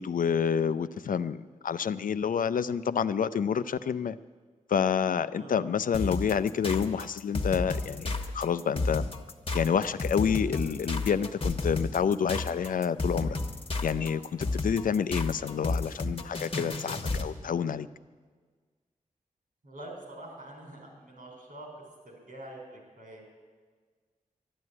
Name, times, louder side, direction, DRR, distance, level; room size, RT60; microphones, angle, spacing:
voice 1, 0.0-4.2 4.7-9.1 9.5-13.4 13.8-17.9, left 7 dB, 80° left, 14 dB, 0.5 m, -28 dB
voice 2, 5.3-5.7 19.6-21.7 22.0-23.3, right 1 dB, 85° right, 0 dB, 4.7 m, -45 dB
sound 1, 5.9-17.3, left 2 dB, 40° left, 1.2 m, -32 dB
12.0 x 11.0 x 9.7 m, 1.5 s
wide cardioid pair, 105°, 14 cm